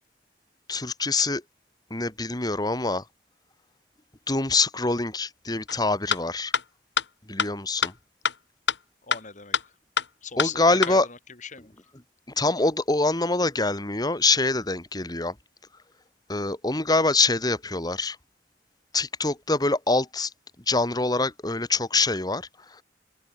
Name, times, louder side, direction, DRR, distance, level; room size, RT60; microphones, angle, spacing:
voice 1, 0.7-1.4 1.9-3.0 4.3-6.5 7.3-7.9 10.4-11.1 12.4-15.3 16.3-18.2 18.9-20.3 20.7-22.8, left 3 dB, 25° left, 1.8 m, -25 dB
sound 1, 5.7-5.8 6.1-6.2 6.5-6.6 7.0-7.1 7.4-7.5 7.8-7.9 8.2-8.3 8.7-8.8 9.1-9.2 9.5-9.6 10.0-10.1 10.4-10.5 10.8-10.9, left 6 dB, 80° left, 2.4 m, -23 dB
voice 2, 9.0-9.7 10.2-11.7, left 6 dB, 45° left, 4.7 m, -39 dB
open air
head